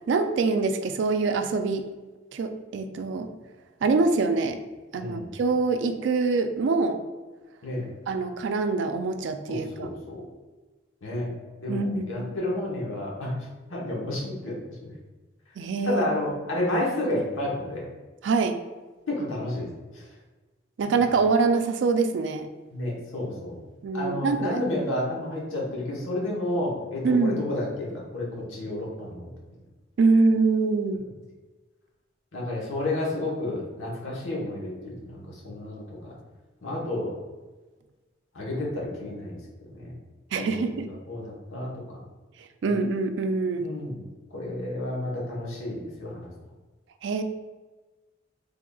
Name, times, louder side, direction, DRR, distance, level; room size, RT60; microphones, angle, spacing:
voice 1, 0.1-1.9 2.3-3.3 3.8-4.6 4.9-7.0 8.1-9.9 11.7-12.4 15.6-16.1 18.2-18.6 20.8-22.5 23.8-24.6 27.0-27.4 30.0-31.0 40.3-40.9 42.6-43.7 47.0-47.2, right 4 dB, 60° right, 8 dB, 0.3 m, -24 dB
voice 2, 5.0-5.3 7.6-7.8 9.5-10.2 11.0-11.3 11.6-13.3 13.7-14.6 14.8-14.9 15.8-17.9 19.1-19.7 19.9-20.0 22.7-23.6 23.9-29.3 32.3-36.1 36.6-37.1 38.3-39.9 40.4-40.5 41.1-42.0 42.6-42.7 43.5-44.0 44.3-46.3, left 1 dB, 80° left, -4 dB, 1.1 m, -31 dB
3.7 x 3.4 x 2.3 m, 1.2 s
head